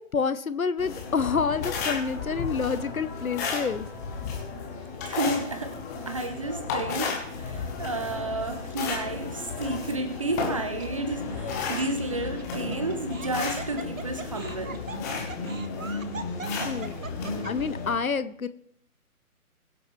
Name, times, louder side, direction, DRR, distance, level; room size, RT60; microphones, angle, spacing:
voice 1, 0.0-3.9 16.6-16.9 17.4-18.5, left 5 dB, 65° left, 14 dB, 0.9 m, -28 dB
sound 1, 0.8-17.9, left 4 dB, 10° left, 1.1 m, -33 dB
voice 2, 4.9-5.8 6.1-14.8 16.9-17.1, right 2 dB, 25° right, 9 dB, 0.8 m, -31 dB
Laughter, 9.7-10.2 10.8-10.9 12.1-17.7, right 4 dB, 60° right, 1.1 m, -41 dB
21.5 x 7.9 x 3.2 m, 0.71 s
figure-of-eight pair, 140°, 44 cm